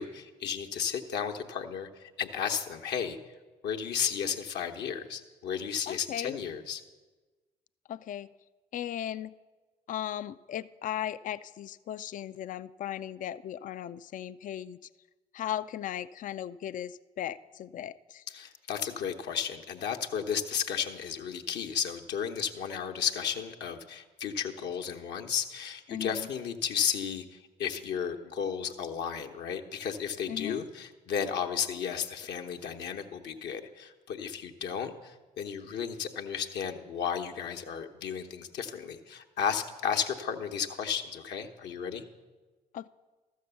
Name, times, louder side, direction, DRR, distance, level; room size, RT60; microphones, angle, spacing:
voice 1, 0.0-1.9 2.2-3.2 3.6-6.8 18.3-42.0, left 7 dB, 65° left, 5 dB, 0.9 m, -33 dB
voice 2, 5.9-6.4 7.9-8.3 8.7-9.3 9.9-14.8 15.3-18.2 25.9-26.3 30.3-30.6 42.7-42.9, left 11 dB, 45° left, 15 dB, 0.4 m, -37 dB
13.0 x 6.5 x 6.9 m, 1.3 s
hypercardioid pair, 45°, 20 cm